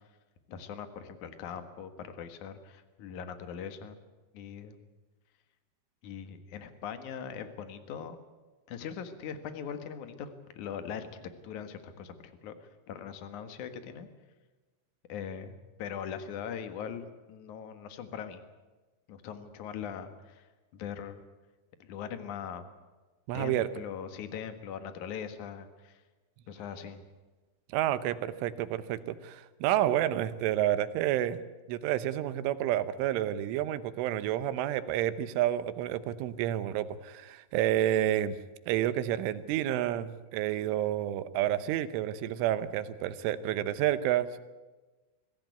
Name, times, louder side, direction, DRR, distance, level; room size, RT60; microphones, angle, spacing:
voice 1, 0.5-4.0 4.3-4.8 6.0-8.2 8.7-11.1 11.4-14.1 15.1-18.4 19.1-20.5 20.7-21.2 21.8-22.6 23.3-26.0 26.5-27.0, left 7 dB, 60° left, 9 dB, 2.1 m, -41 dB
voice 2, 23.3-23.7 27.7-31.4 31.7-38.4 38.7-44.4, right 12 dB, 80° right, 13 dB, 3.4 m, -29 dB
24.0 x 16.0 x 9.4 m, 1.2 s
omnidirectional pair, 5.7 m